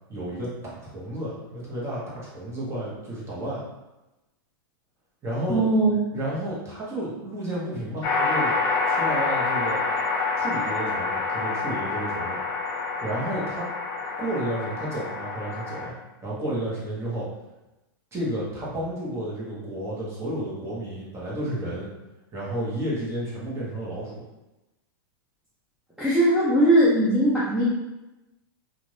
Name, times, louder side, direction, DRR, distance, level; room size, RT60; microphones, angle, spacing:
voice 1, 0.1-0.5 0.8-3.6 5.2-5.6 6.1-9.8 10.4-12.4 13.0-13.7 14.2-15.9 16.2-17.3 18.1-21.9 22.3-24.2, right 1 dB, 20° right, -6 dB, 1.0 m, -31 dB
voice 2, 5.5-5.9 26.0-27.7, right 1 dB, 5° right, -9 dB, 0.5 m, -20 dB
sound 1, 8.0-15.9, left 4 dB, 50° left, 0.7 m, -27 dB
2.5 x 2.5 x 3.2 m, 1.0 s
hypercardioid pair, 130°, 13 cm